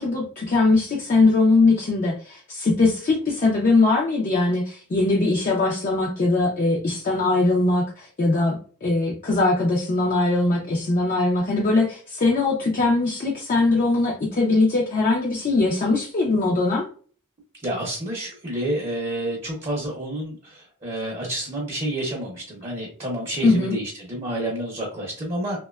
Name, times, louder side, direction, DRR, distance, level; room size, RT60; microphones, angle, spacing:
voice 1, 0.0-8.6 8.8-16.8 23.4-23.8, left 3 dB, 35° left, -3 dB, 0.4 m, -21 dB
voice 2, 17.6-25.6, right 1 dB, 25° right, -3 dB, 0.6 m, -29 dB
2.7 x 2.2 x 2.2 m, 0.43 s
head